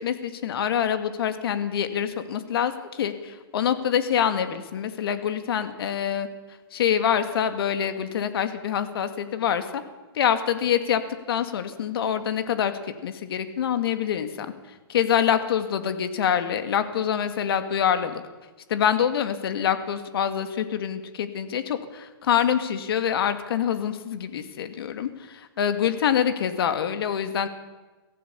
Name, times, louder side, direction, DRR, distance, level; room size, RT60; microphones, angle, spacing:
voice 1, 0.0-6.3 6.7-9.8 10.1-11.0 11.3-12.7 13.0-14.5 14.9-18.2 18.7-27.5, left 9 dB, 65° left, 9 dB, 2.2 m, -25 dB
23.5 x 16.0 x 7.0 m, 1.2 s
hypercardioid pair, 150°, 14 cm